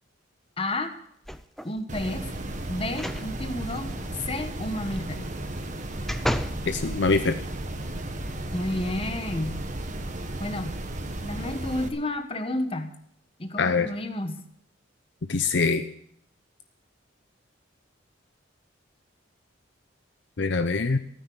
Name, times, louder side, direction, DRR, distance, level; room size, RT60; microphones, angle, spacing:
voice 1, 0.6-0.9 1.6-2.3 2.7-3.9 4.3-5.3 8.5-9.6 10.4-10.8 11.2-12.9 13.4-14.4, left 1 dB, 30° left, 7 dB, 1.3 m, -31 dB
sound 1, 1.2-1.8 2.9-3.3 3.7-3.8 5.4-6.6 7.2-7.3, equal, ahead, 0.6 m, -32 dB
sound 2, 1.9-11.9, right 1 dB, 40° right, 1.4 m, -34 dB
voice 2, 6.7-7.4 13.6-13.9 15.3-15.8 20.4-21.0, left 4 dB, 60° left, 9 dB, 0.7 m, -23 dB
14.5 x 9.2 x 7.9 m, 0.70 s
head